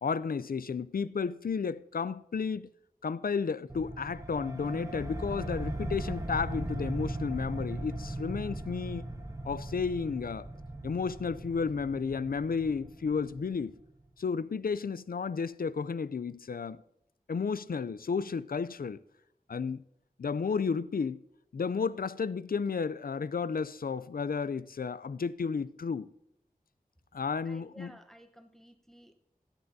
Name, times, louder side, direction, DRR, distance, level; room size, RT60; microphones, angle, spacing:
voice 1, 0.0-2.7 3.0-9.0 9.4-10.5 10.8-13.7 14.2-16.8 17.3-19.0 19.5-19.8 20.2-21.2 21.5-26.1 27.1-27.9, left 5 dB, 75° left, 0.4 m, -32 dB
sound 1, 3.7-13.9, right 1 dB, 20° right, 1.0 m, -39 dB
voice 2, 27.4-29.1, equal, ahead, 0.9 m, -54 dB
16.5 x 10.5 x 2.7 m
wide cardioid pair, 45°, 15 cm